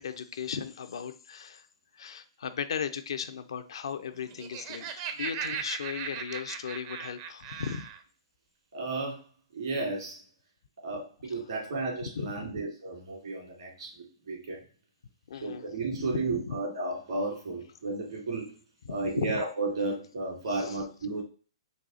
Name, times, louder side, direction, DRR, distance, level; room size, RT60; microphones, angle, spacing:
voice 1, 0.0-1.7 1.9-7.9 12.2-12.5 15.3-15.7 16.0-16.6 18.8-19.3 20.5-20.8, left 7 dB, 70° left, 10 dB, 0.4 m, -36 dB
Laughter, 4.2-8.0, right 7 dB, 40° right, 0.5 m, -38 dB
voice 2, 8.7-9.2 9.5-10.2 10.8-14.6 15.4-18.5 18.9-21.2, right 3 dB, 70° right, 0 dB, 2.0 m, -33 dB
4.1 x 2.4 x 3.9 m, 0.37 s
hypercardioid pair, 125°, 3 cm